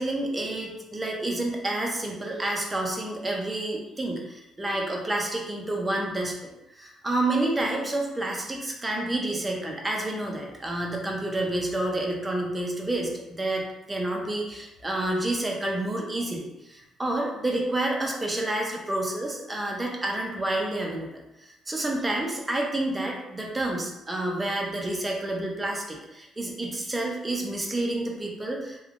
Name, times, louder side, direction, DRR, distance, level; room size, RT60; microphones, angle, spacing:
voice 1, 0.0-28.8, right 1 dB, 15° right, -1 dB, 0.6 m, -29 dB
3.4 x 2.3 x 3.6 m, 0.94 s
cardioid pair, 140°, 0 cm